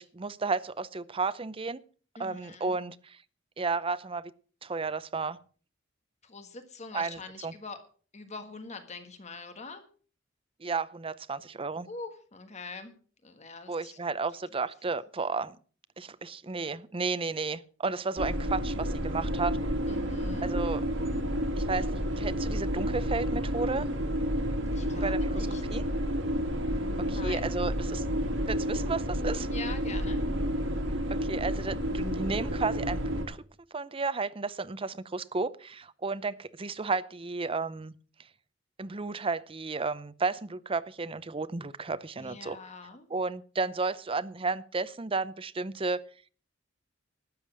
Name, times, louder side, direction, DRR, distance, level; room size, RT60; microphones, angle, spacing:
voice 1, 0.0-1.8 2.2-3.2 3.6-4.3 4.6-5.4 6.9-7.5 10.6-11.9 13.7-15.6 16.0-19.6 20.4-20.9 21.6-23.9 25.0-25.8 27.0-28.0 28.4-29.5 31.1-33.4 33.7-37.9 38.8-42.6 43.1-46.0, right 4 dB, 30° right, 16 dB, 0.6 m, -33 dB
voice 2, 2.2-2.8 6.2-7.8 8.1-9.8 11.9-12.9 13.2-14.0 19.9-20.5 24.7-25.8 26.8-27.5 29.5-30.2 42.2-43.1, left 3 dB, 35° left, 8 dB, 1.5 m, -44 dB
sound 1, 18.2-33.3, equal, 80° right, 2.8 m, -30 dB
12.5 x 8.6 x 6.2 m, 0.42 s
head